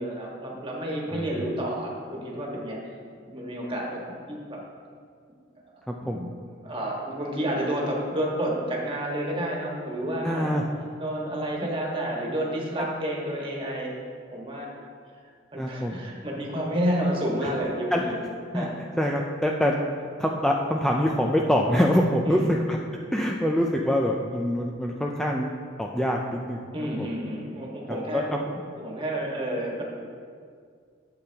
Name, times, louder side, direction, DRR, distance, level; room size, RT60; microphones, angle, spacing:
voice 1, 0.0-2.8 3.3-4.6 6.0-10.7 11.0-13.9 14.3-14.7 15.5-18.2 18.5-18.7 22.2-22.5 26.7-29.8, right 1 dB, 30° right, -2 dB, 1.5 m, -30 dB
voice 2, 5.9-6.2 10.2-10.6 11.6-11.7 15.6-15.9 17.9-18.0 18.5-18.7 19.0-19.8 20.2-22.8 23.1-25.5 25.8-26.6 27.0-27.1 27.9-28.4, equal, 5° left, -1 dB, 0.4 m, -25 dB
11.5 x 7.7 x 2.9 m, 2.1 s
head